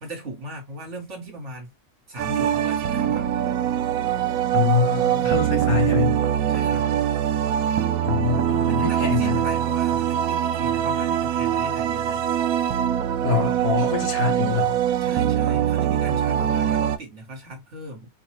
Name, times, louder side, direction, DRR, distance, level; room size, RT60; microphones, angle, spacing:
voice 1, 0.0-1.7 2.1-3.3 6.5-6.9 8.7-12.3 15.0-18.1, right 1 dB, 55° right, 1.7 m, -37 dB
sound 1, 2.2-17.0, right 10 dB, 80° right, 1.0 m, -23 dB
voice 2, 4.5-6.2 8.0-9.4 13.2-14.8, left 7 dB, 75° left, 1.8 m, -24 dB
4.6 x 2.4 x 3.1 m
omnidirectional pair, 1.5 m